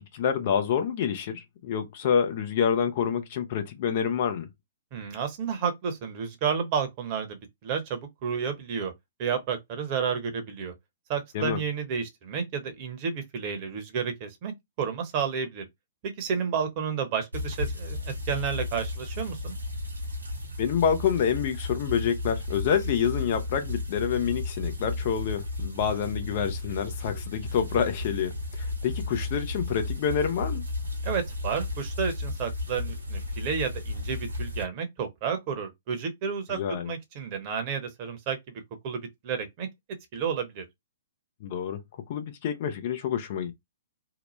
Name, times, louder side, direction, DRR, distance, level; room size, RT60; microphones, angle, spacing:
voice 1, 0.0-4.5 11.3-11.6 20.6-30.6 36.5-36.9 41.4-41.8 42.1-43.5, left 7 dB, 45° left, 0.5 m, -27 dB
voice 2, 4.9-8.9 9.2-10.7 11.1-14.5 14.8-15.7 16.0-19.6 31.0-36.6 36.8-38.4 38.8-39.7 40.1-40.6, right 6 dB, 35° right, 0.9 m, -31 dB
sound 1, 17.3-34.6, left 2 dB, 80° right, 1.1 m, -34 dB
2.8 x 2.1 x 3.1 m
figure-of-eight pair, 115°, 0 cm